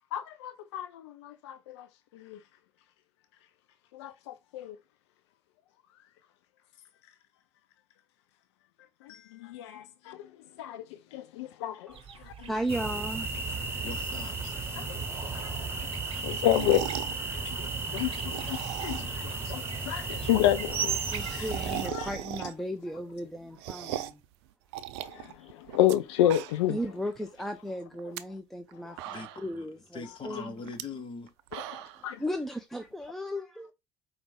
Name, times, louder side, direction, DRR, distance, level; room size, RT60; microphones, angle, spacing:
voice 1, 0.1-1.9 2.1-2.4 3.9-4.8 9.0-10.3 10.6-12.5 14.4-21.5 21.8-22.1 25.0-26.8 28.8-29.0 31.5-32.2, left 12 dB, 70° left, 0.4 m, -31 dB
sound 1, 11.9-22.3, right 8 dB, 40° right, 0.9 m, -41 dB
voice 2, 12.5-13.3 21.1-24.2 25.4-25.5 26.7-30.5 31.6-33.7, equal, ahead, 0.6 m, -36 dB
sound 2, 12.7-21.9, right 3 dB, 15° right, 1.2 m, -35 dB
voice 3, 13.8-14.7 29.0-29.7 29.9-31.3, left 4 dB, 35° left, 1.1 m, -42 dB
sound 3, 16.4-17.2 18.1-19.3 19.6-19.7 19.9-20.0 20.2-20.3 20.6-22.8 23.2-24.3 24.7-26.0 26.2-26.8 27.2-27.3 27.9-28.2 28.7-28.8 29.0-29.6 30.7-30.8 31.3-32.1, right 12 dB, 65° right, 0.4 m, -38 dB
5.0 x 2.4 x 3.4 m
figure-of-eight pair, 60°, 15 cm